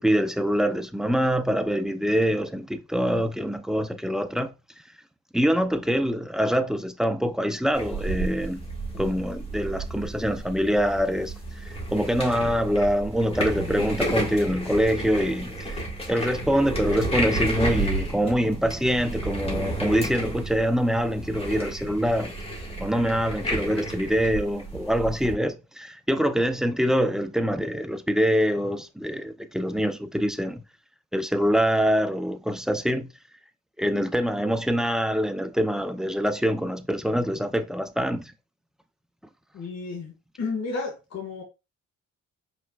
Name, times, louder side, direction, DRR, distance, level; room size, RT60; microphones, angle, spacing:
voice 1, 0.0-4.5 5.3-8.7 9.0-11.3 11.6-15.8 16.1-22.3 22.8-30.6 31.1-33.1 33.8-38.3, equal, ahead, 0.5 m, -25 dB
sound 1, 7.7-25.3, right 1 dB, 20° left, 1.7 m, -32 dB
voice 2, 39.5-40.1 40.4-41.4, left 4 dB, 60° left, 1.8 m, -32 dB
5.4 x 3.3 x 2.3 m
cardioid pair, 90°, 30 cm